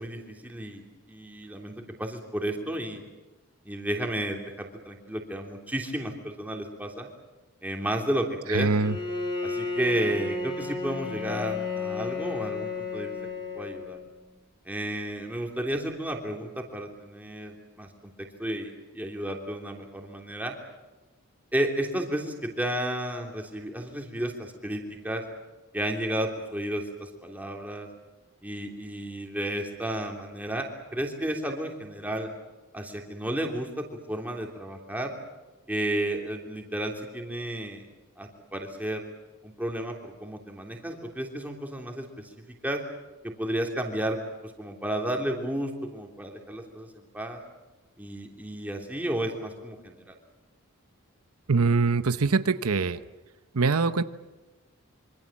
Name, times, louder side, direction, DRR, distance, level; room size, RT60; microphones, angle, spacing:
voice 1, 0.0-3.0 3.6-7.1 7.6-8.7 9.4-13.1 13.5-14.0 14.6-18.1 18.4-20.5 21.5-25.2 25.7-27.9 28.4-30.7 30.9-32.3 32.7-35.1 35.7-37.9 38.2-39.0 39.4-42.3 42.6-42.8 43.2-47.4 48.0-50.2, right 1 dB, 5° right, 1 dB, 3.2 m, -32 dB
voice 2, 8.5-9.0 51.5-53.0 53.5-54.0, right 4 dB, 90° right, 12 dB, 0.9 m, -23 dB
Bowed string instrument, 8.8-14.2, left 3 dB, 20° left, 4.7 m, -32 dB
26.0 x 25.0 x 7.4 m, 1.2 s
head